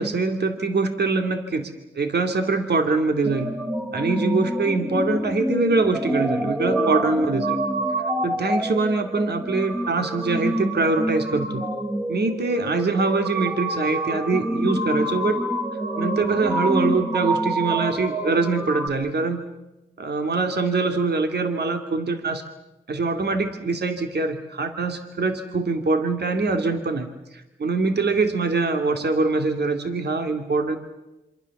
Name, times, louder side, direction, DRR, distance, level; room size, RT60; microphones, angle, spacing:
voice 1, 0.0-3.5 3.9-7.6 8.2-11.7 12.1-15.4 16.0-19.4 20.0-22.4 22.9-30.8, right 3 dB, 60° right, 6 dB, 2.6 m, -23 dB
sound 1, 3.2-18.9, right 1 dB, 15° right, 5.1 m, -27 dB
27.0 x 24.5 x 7.3 m, 0.99 s
supercardioid pair, 40°, 19 cm